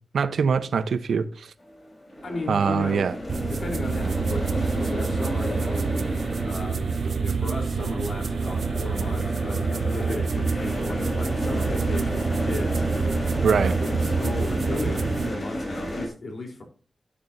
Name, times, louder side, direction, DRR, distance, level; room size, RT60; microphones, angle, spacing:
voice 1, 0.1-1.5 2.5-3.1 13.4-13.7, right 6 dB, 85° right, 0.8 m, -23 dB
sound 1, 1.7-16.1, equal, 30° left, 4.1 m, -32 dB
voice 2, 2.2-3.1 3.4-5.9 6.4-12.9 13.4-16.6, left 2 dB, 55° left, 3.6 m, -35 dB
sound 2, 3.3-15.3, right 5 dB, 65° right, 0.8 m, -27 dB
10.5 x 10.0 x 2.7 m
wide cardioid pair, 160°, 0 cm